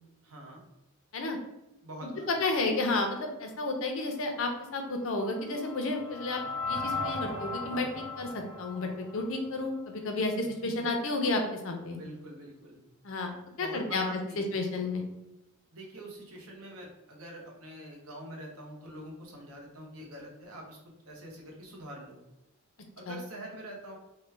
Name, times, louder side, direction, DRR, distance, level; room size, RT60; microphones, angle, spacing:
voice 1, 0.2-0.6 1.8-2.3 10.6-10.7 11.9-12.8 13.6-14.6 15.7-22.2 23.0-24.0, right 1 dB, 75° right, 0 dB, 0.8 m, -45 dB
voice 2, 2.3-12.0 13.0-13.3 13.6-14.0 14.4-15.0 23.1-23.2, left 2 dB, 60° left, 4 dB, 0.5 m, -31 dB
sound 1, 4.8-10.0, left 3 dB, ahead, 0.5 m, -38 dB
3.1 x 2.1 x 3.2 m, 0.95 s
head